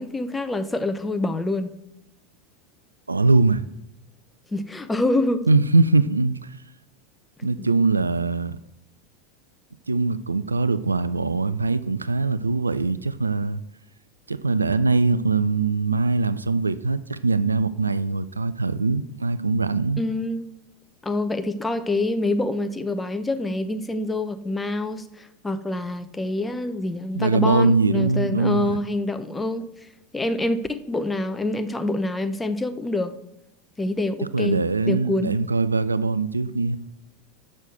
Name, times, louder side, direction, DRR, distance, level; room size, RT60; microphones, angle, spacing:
voice 1, 0.0-1.7 4.5-5.4 20.0-20.5 21.0-29.7 30.1-33.1 33.8-34.6 34.9-35.3, left 2 dB, 10° left, 10 dB, 0.7 m, -26 dB
voice 2, 3.1-3.6 5.5-6.6 7.4-8.6 9.9-13.6 14.3-20.0 27.1-28.8 34.3-36.8, right 3 dB, 80° right, 15 dB, 0.3 m, -22 dB
6.3 x 6.3 x 6.6 m, 0.85 s
figure-of-eight pair, 85°, 0 cm